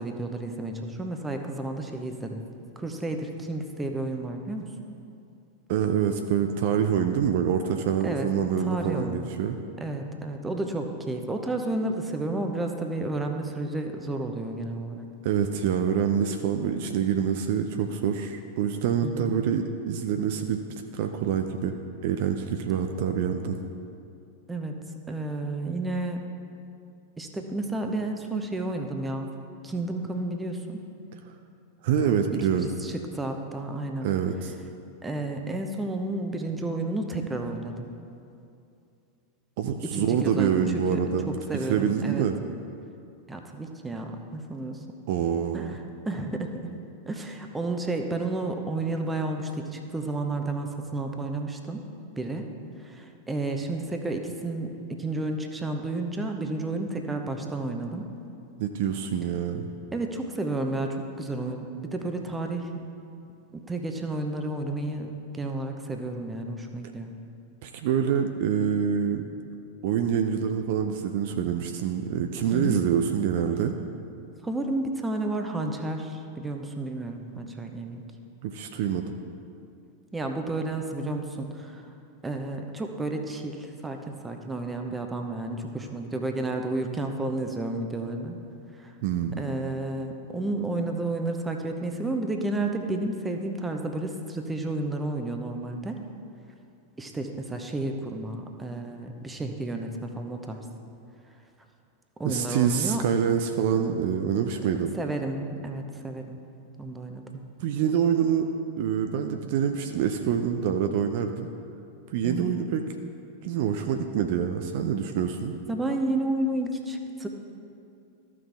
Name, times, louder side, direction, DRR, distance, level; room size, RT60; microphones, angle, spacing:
voice 1, 0.0-2.4 2.8-4.7 8.0-8.3 8.6-9.3 9.8-15.1 19.0-19.3 24.5-24.8 25.1-26.3 27.2-29.3 29.6-30.8 32.5-34.1 35.0-37.9 39.8-42.3 43.3-44.8 45.5-46.7 47.1-51.8 52.2-52.5 52.8-58.1 59.9-62.8 63.5-67.2 72.5-72.8 74.4-78.0 80.1-81.8 82.2-88.4 88.7-88.9 89.4-96.0 97.0-100.7 102.2-103.1 104.9-106.4 106.8-107.4 112.2-112.5 115.7-117.3, right 2 dB, 10° right, 4 dB, 0.8 m, -31 dB
voice 2, 5.7-9.6 15.2-20.6 20.9-21.7 22.0-23.6 31.8-32.7 34.0-34.5 39.6-41.3 41.7-42.4 45.1-45.7 58.6-59.7 67.6-69.2 69.8-73.7 78.4-79.0 89.0-89.4 102.2-104.9 107.6-108.5 108.8-111.5 112.1-112.8 113.4-115.5, right 8 dB, 50° right, 6 dB, 0.5 m, -26 dB
14.0 x 6.0 x 3.4 m, 2.6 s
figure-of-eight pair, 90°, 0 cm